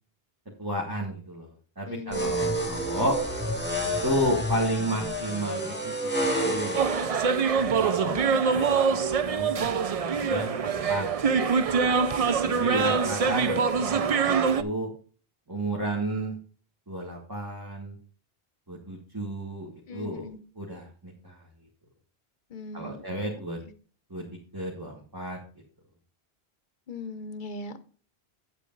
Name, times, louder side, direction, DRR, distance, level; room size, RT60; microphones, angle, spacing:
voice 1, 0.6-1.5 1.8-3.2 4.0-5.9 6.2-6.9 7.8-8.2 8.5-11.0 11.5-11.6 12.4-14.9 15.5-16.4 16.9-18.0 18.7-20.3 20.6-21.4 22.7-23.6 24.1-24.3 24.5-25.4, right 1 dB, 20° right, -2 dB, 1.7 m, -32 dB
voice 2, 1.9-2.3 8.1-8.4 12.7-12.8 19.9-20.4 22.5-23.0 26.9-27.8, left 3 dB, 55° left, 12 dB, 0.9 m, -39 dB
sound 1, 2.1-7.1, equal, 10° left, 1.9 m, -29 dB
sound 2, 6.7-14.6, right 5 dB, 45° right, 0.5 m, -24 dB
8.9 x 8.2 x 3.9 m, 0.40 s
omnidirectional pair, 1.1 m